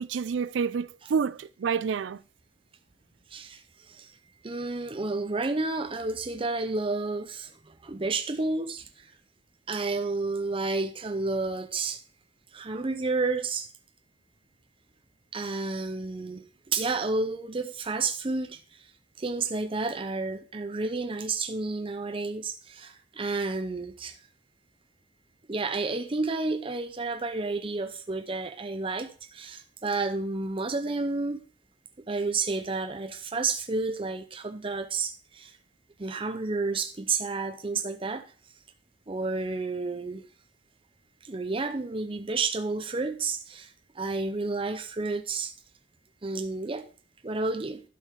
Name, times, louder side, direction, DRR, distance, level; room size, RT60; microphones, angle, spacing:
voice 1, 0.0-2.2, right 6 dB, 75° right, 0.4 m, -28 dB
voice 2, 3.3-4.2 4.4-9.1 9.7-12.0 12.5-13.7 15.3-18.9 19.2-24.2 25.5-31.4 32.1-35.6 36.0-38.3 39.1-40.3 41.2-45.5 46.2-46.9 47.2-47.8, right 3 dB, 30° right, 0.6 m, -31 dB
12.0 x 5.6 x 4.6 m
head